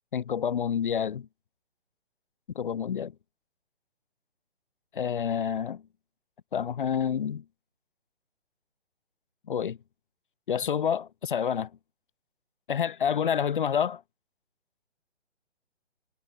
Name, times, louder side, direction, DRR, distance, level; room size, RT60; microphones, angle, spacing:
voice 1, 0.1-1.3 2.6-3.1 5.0-5.8 6.5-7.4 9.5-9.8 10.5-11.7 12.7-14.0, left 8 dB, 50° left, 0.6 m, -28 dB
figure-of-eight pair, 140°, 33 cm